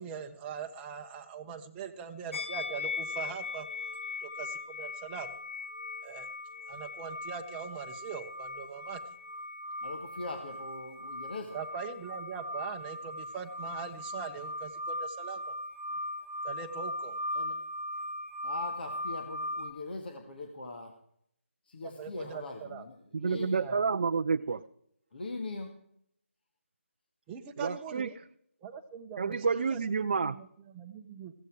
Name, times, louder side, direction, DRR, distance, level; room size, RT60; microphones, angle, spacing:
voice 1, 0.0-3.7 4.2-5.3 6.0-6.3 6.7-9.0 11.5-15.5 16.4-17.2 22.0-22.8 23.6-23.8 27.3-28.2 28.6-29.8 30.2-31.3, right 7 dB, 10° right, 4 dB, 1.1 m, -42 dB
sound 1, 2.3-19.7, left 2 dB, 65° left, 3.0 m, -39 dB
voice 2, 9.8-11.6 17.3-17.6 18.4-21.0 21.6-23.7 25.1-25.8, left 2 dB, 45° left, 4 dB, 2.2 m, -41 dB
voice 3, 23.1-24.6 27.6-28.1 29.2-30.4, right 5 dB, 40° right, 7 dB, 0.6 m, -29 dB
16.0 x 14.5 x 5.0 m, 0.70 s
figure-of-eight pair, 155°, 7 cm